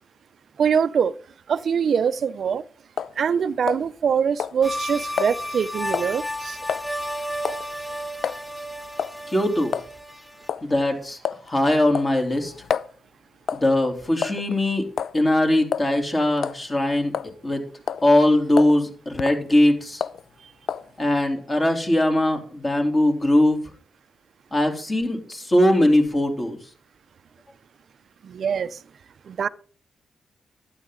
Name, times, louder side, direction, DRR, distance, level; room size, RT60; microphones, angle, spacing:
voice 1, 0.6-1.1 1.5-2.6 3.2-6.6 28.2-28.8 29.3-29.5, right 7 dB, 65° right, 0.5 m, -23 dB
sound 1, 3.0-3.2 3.7-4.1 4.4-4.6 5.2-5.3 5.9-6.1 6.7-6.9 7.4-7.7 8.2-8.4 9.0-9.2 9.7-9.9 10.5-10.7 11.2-11.5 11.9-12.9 13.5-13.7 14.2-14.6 15.0-15.2 15.7-15.9 16.4-16.6 17.1-17.5 17.9-18.1 18.6-18.8 19.2-19.4 20.0-20.2 20.7-20.9, left 8 dB, 75° left, 0.4 m, -28 dB
sound 2, 4.6-10.5, equal, 10° left, 3.2 m, -32 dB
voice 2, 9.3-9.8 10.6-11.2 11.5-12.5 13.5-14.8 15.1-17.1 17.4-17.6 18.0-20.0 21.0-23.6 24.5-26.6, left 1 dB, 30° left, 3.0 m, -20 dB
12.0 x 9.8 x 3.7 m
cardioid pair, 75°, 0 cm